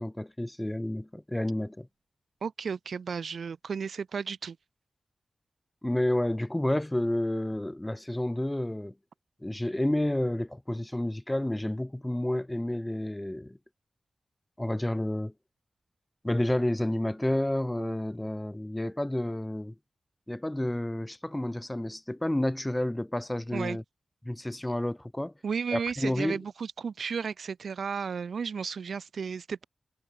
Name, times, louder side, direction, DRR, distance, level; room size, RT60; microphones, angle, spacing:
voice 1, 0.0-1.9 5.8-8.9 9.4-13.6 14.6-15.3 16.2-19.7 20.3-23.8 24.2-25.3 25.7-26.4, left 1 dB, 10° left, 5.3 m, -30 dB
voice 2, 2.4-4.6 23.5-23.8 25.4-29.6, right 6 dB, 75° right, 2.0 m, -33 dB
wide cardioid pair, 145°, 0 cm